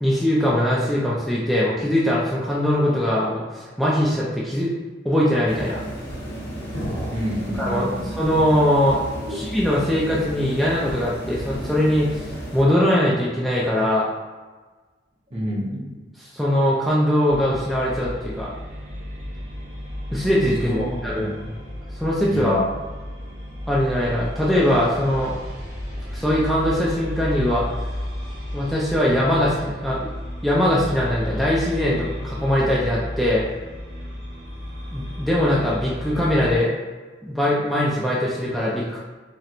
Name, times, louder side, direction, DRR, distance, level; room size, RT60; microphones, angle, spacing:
voice 1, 0.0-4.7 5.0-5.8 7.6-9.0 9.3-14.0 16.3-18.5 20.1-21.3 22.0-22.6 23.7-25.4 26.1-27.6 28.5-30.1 30.4-33.4 34.9-36.7 37.2-39.0, left 1 dB, ahead, -7 dB, 0.3 m, -21 dB
sound 1, 5.5-12.6, right 1 dB, 65° left, 1.1 m, -33 dB
voice 2, 7.1-8.1 9.3-9.4 15.3-16.0 20.7-21.6 22.2-22.6, equal, 35° right, -3 dB, 0.7 m, -29 dB
sound 2, 17.3-36.6, left 1 dB, 75° right, 1.3 m, -33 dB
4.2 x 2.0 x 2.5 m, 1.3 s
head